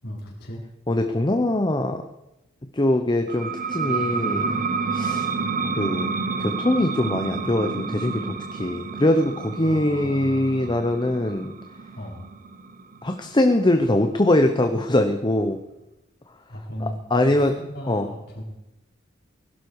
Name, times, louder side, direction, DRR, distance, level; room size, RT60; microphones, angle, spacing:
voice 1, 0.0-0.6 9.6-10.8 11.9-12.3 16.5-18.4, equal, 55° left, -2 dB, 4.6 m, -36 dB
voice 2, 0.9-2.0 2.7-4.6 4.9-5.3 5.8-6.1 6.4-11.5 13.0-15.6 16.8-17.5 17.9-18.1, left 1 dB, 25° left, 6 dB, 0.9 m, -22 dB
sound 1, 3.3-14.6, right 4 dB, 45° right, 0.8 m, -30 dB
20.5 x 12.0 x 4.8 m, 0.92 s
head